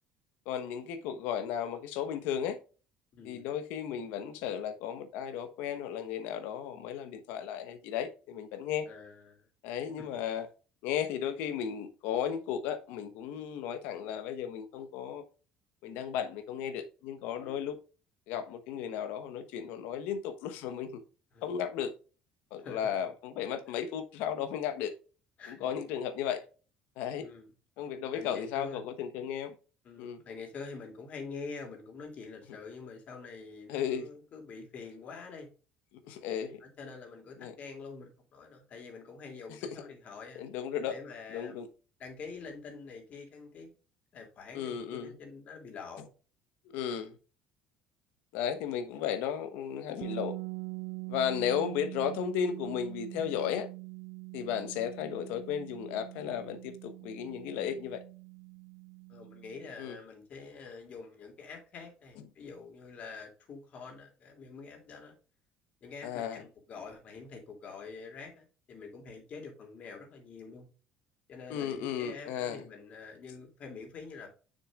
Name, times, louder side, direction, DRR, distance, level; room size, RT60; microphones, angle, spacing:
voice 1, 0.5-2.6 3.2-8.9 9.6-10.5 10.8-15.2 15.8-17.8 18.3-21.0 21.4-21.9 22.5-24.9 25.5-26.4 27.0-27.3 27.8-29.5 30.0-30.2 33.7-34.1 36.0-36.6 37.4-37.5 40.3-40.9 41.3-41.7 44.5-45.2 46.7-47.2 48.3-50.4 51.1-53.7 54.3-58.0 59.8-60.0 66.0-66.4 71.5-72.6, left 8 dB, 80° left, 1.1 m, -34 dB
voice 2, 3.1-3.5 8.9-9.5 10.0-10.2 17.3-17.6 21.3-21.5 22.6-23.1 25.4-25.7 27.2-27.5 28.1-28.8 29.8-35.5 36.6-40.4 40.9-41.6 42.0-43.7 44.1-46.1 59.1-65.2 65.8-70.7 71.3-74.3, left 4 dB, 50° left, 2.7 m, -46 dB
sound 1, 50.0-59.8, right 30 dB, 80° right, 0.4 m, -43 dB
6.8 x 6.5 x 2.4 m
supercardioid pair, 85°, 3 cm